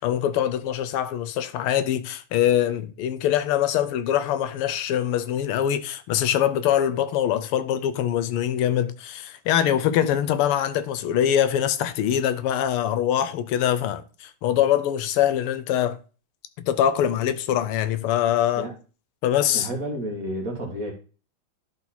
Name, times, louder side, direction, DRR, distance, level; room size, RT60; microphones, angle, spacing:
voice 1, 0.0-16.0 16.6-18.7 19.2-19.7, left 10 dB, 85° left, 1.6 m, -23 dB
voice 2, 19.5-20.9, right 1 dB, 40° right, 1.8 m, -31 dB
11.0 x 4.0 x 4.2 m
omnidirectional pair, 2.4 m